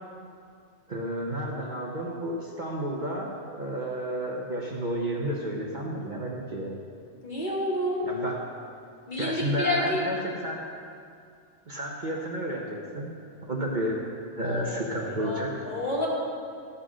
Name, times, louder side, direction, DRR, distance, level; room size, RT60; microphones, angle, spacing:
voice 1, 0.9-6.7 8.0-8.4 9.2-10.6 11.7-13.1 13.5-14.0 14.3-15.7, right 1 dB, 40° right, -2 dB, 1.2 m, -31 dB
voice 2, 7.2-8.1 9.1-10.1 14.4-16.1, left 1 dB, 40° left, -5 dB, 2.1 m, -30 dB
13.0 x 6.2 x 6.3 m, 2.3 s
omnidirectional pair, 1.3 m